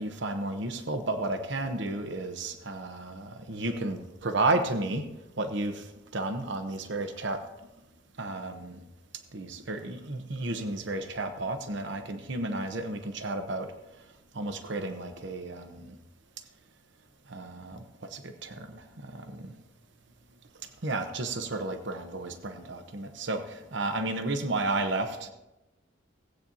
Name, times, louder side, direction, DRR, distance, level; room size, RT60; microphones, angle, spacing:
voice 1, 0.0-5.1 5.3-7.4 8.2-8.8 9.3-15.9 16.4-16.5 17.3-19.6 20.6-25.3, right 2 dB, 65° right, 0.9 m, -33 dB
17.5 x 8.7 x 2.7 m
head